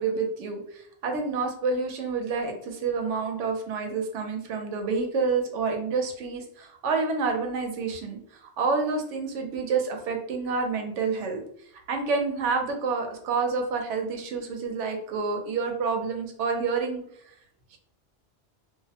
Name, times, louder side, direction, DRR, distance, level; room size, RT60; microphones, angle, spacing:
voice 1, 0.0-11.4 11.9-17.0 17.7-17.8, right 4 dB, 85° right, 3 dB, 0.9 m, -28 dB
2.4 x 2.0 x 2.7 m, 0.68 s
omnidirectional pair, 1.2 m